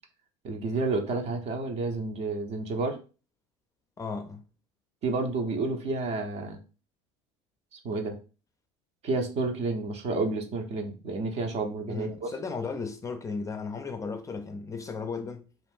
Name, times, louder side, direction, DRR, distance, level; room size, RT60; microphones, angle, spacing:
voice 1, 0.4-3.0 5.0-6.6 7.7-8.2 9.0-12.3, right 3 dB, 45° right, 0.7 m, -30 dB
voice 2, 4.0-4.4 11.9-15.5, left 4 dB, 20° left, 0.5 m, -35 dB
2.5 x 2.5 x 3.4 m
hypercardioid pair, 75°, 15 cm